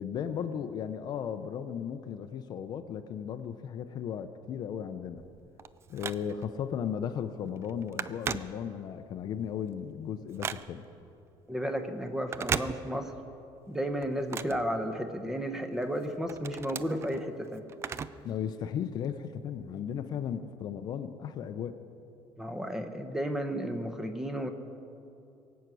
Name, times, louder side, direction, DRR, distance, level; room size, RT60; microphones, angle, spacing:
voice 1, 0.0-5.2 5.9-10.9 18.2-21.7, left 8 dB, 40° left, 9 dB, 0.6 m, -36 dB
Telephone, 5.2-6.6 7.1-7.3 7.6-9.1 9.5-11.0 12.2-13.3 13.6-15.4 15.8-18.3 18.6-18.7 19.6-19.7, right 7 dB, 25° right, 0.3 m, -37 dB
voice 2, 11.5-13.1 13.7-17.6 22.4-24.5, equal, 5° right, 7 dB, 0.8 m, -33 dB
22.5 x 8.2 x 6.2 m, 2.7 s
cardioid pair, 160°, 10 cm